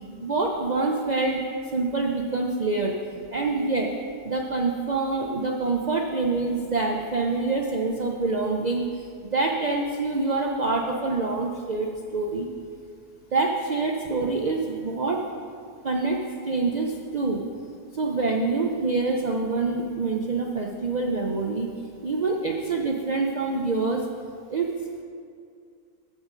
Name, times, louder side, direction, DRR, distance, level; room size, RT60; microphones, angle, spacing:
voice 1, 0.2-1.4 1.7-3.9 4.2-8.9 9.2-12.5 13.3-15.2 15.8-16.2 16.4-17.4 18.0-21.7 22.0-24.0 24.5-24.7, right 3 dB, 85° right, 1 dB, 0.3 m, -26 dB
13.5 x 5.6 x 5.1 m, 2.3 s
omnidirectional pair, 1.7 m